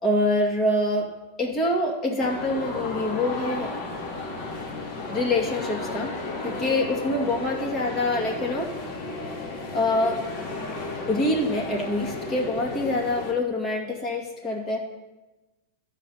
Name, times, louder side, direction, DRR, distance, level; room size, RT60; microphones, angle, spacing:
voice 1, 0.0-1.1 1.4-3.7 5.1-6.1 6.4-8.9 9.7-10.2 11.1-14.8, left 1 dB, 30° left, 0 dB, 2.2 m, -25 dB
sound 1, 2.2-13.3, left 3 dB, 55° left, 2.0 m, -33 dB
12.5 x 5.0 x 5.6 m, 1.1 s
hypercardioid pair, 110°, 0 cm